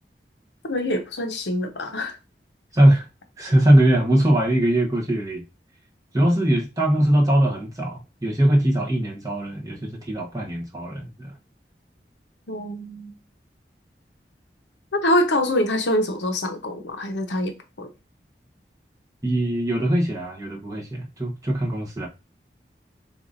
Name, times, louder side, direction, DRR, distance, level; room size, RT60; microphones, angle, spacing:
voice 1, 0.6-2.2 12.5-13.2 14.9-17.9, left 1 dB, 90° left, 0.9 m, -25 dB
voice 2, 2.7-3.1 3.4-5.4 6.1-11.3 19.2-22.1, right 1 dB, 20° right, 0.9 m, -21 dB
6.8 x 2.5 x 2.6 m
head